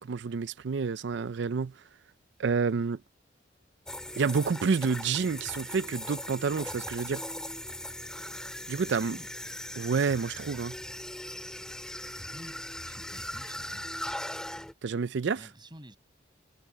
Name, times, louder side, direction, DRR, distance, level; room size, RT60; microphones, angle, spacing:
voice 1, 0.0-1.7 2.4-3.0 4.2-7.2 8.7-9.2 9.8-10.8 14.8-15.4, right 5 dB, 65° right, 0.5 m, -29 dB
sound 1, 3.9-14.7, left 1 dB, 5° left, 2.4 m, -39 dB
voice 2, 8.8-9.3 12.0-13.9 15.4-16.0, right 1 dB, 25° right, 5.8 m, -51 dB
head